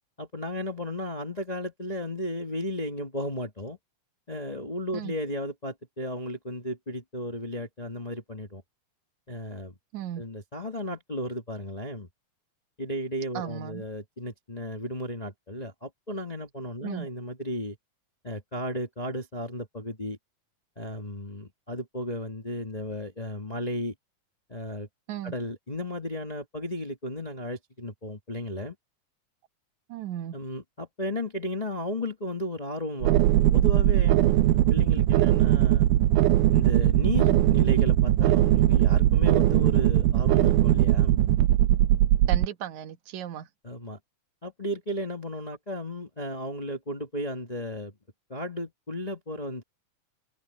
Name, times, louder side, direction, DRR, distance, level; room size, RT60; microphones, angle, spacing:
voice 1, 0.2-3.8 4.3-8.6 9.3-9.7 10.2-12.1 12.8-17.8 18.2-20.2 20.8-23.9 24.5-24.9 25.2-28.7 30.3-33.2 33.5-35.9 36.5-41.2 43.6-44.0 44.4-47.9 48.3-49.6, left 1 dB, 55° left, 0.4 m, -34 dB
voice 2, 9.9-10.2 13.3-13.8 16.8-17.1 25.1-25.3 29.9-30.3 42.3-43.5, right 11 dB, 65° right, 2.8 m, -35 dB
sound 1, 33.0-42.5, right 13 dB, 85° right, 2.4 m, -20 dB
omnidirectional pair, 3.6 m